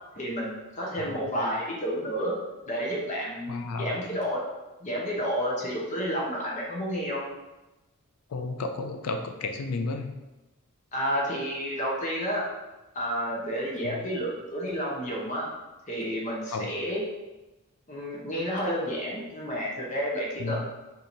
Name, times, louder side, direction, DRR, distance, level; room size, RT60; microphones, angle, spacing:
voice 1, 0.2-2.4 2.7-4.4 4.8-7.2 10.9-12.5 12.9-15.5 15.9-17.0 17.9-20.6, equal, 35° left, -3 dB, 0.7 m, -30 dB
voice 2, 3.5-4.0 8.3-10.1 13.8-14.0 16.5-16.7 20.4-20.6, left 3 dB, 80° left, 5 dB, 0.4 m, -32 dB
4.3 x 2.7 x 2.6 m, 1.0 s
head